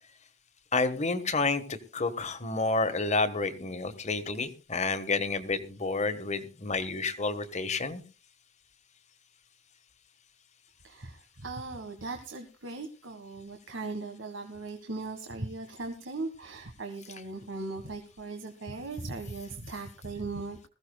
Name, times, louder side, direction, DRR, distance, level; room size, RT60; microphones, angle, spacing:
voice 1, 0.7-8.0, left 3 dB, 35° left, 9 dB, 1.4 m, -30 dB
voice 2, 10.8-20.7, right 3 dB, 85° right, 5 dB, 1.6 m, -38 dB
20.5 x 15.0 x 2.3 m, 0.32 s
head